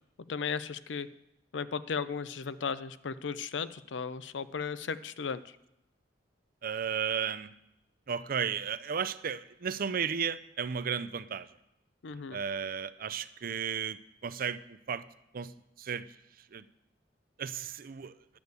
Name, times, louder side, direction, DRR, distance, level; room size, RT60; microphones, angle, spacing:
voice 1, 0.3-1.1 1.5-5.6 12.0-12.4, left 5 dB, 80° left, 15 dB, 0.5 m, -35 dB
voice 2, 6.6-7.5 8.1-11.5 12.3-15.0 15.3-15.5 15.8-16.1 16.5-16.7 17.4-18.1, right 7 dB, 50° right, 15 dB, 0.5 m, -34 dB
10.5 x 6.7 x 8.1 m, 0.85 s
head